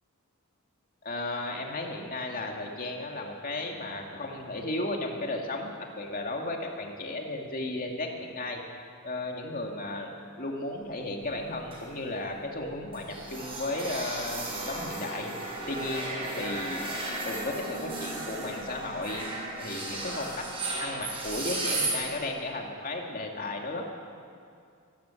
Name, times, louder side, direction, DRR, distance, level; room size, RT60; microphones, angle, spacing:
voice 1, 1.0-8.6 9.0-10.1 10.4-15.3 15.7-16.9 17.2-19.2 19.5-20.4 20.8-23.9, left 2 dB, 40° left, 1 dB, 2.5 m, -34 dB
sound 1, 11.0-12.0 12.3-12.4 12.7-22.1, right 2 dB, 25° right, 5.4 m, -35 dB
23.5 x 14.0 x 8.5 m, 2.3 s
head